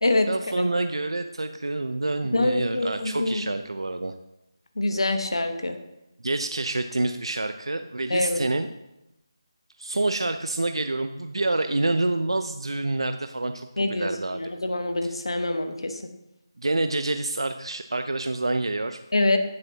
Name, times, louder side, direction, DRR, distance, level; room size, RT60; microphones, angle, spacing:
voice 1, 0.3-4.1 6.2-8.7 9.8-14.5 15.0-15.1 16.6-19.0, right 2 dB, 85° right, 8 dB, 0.6 m, -27 dB
voice 2, 2.3-3.4 4.8-5.7 8.1-8.4 13.8-16.0 19.1-19.4, left 2 dB, 85° left, 6 dB, 1.2 m, -25 dB
10.5 x 9.8 x 2.9 m, 0.90 s
figure-of-eight pair, 170°, 3 cm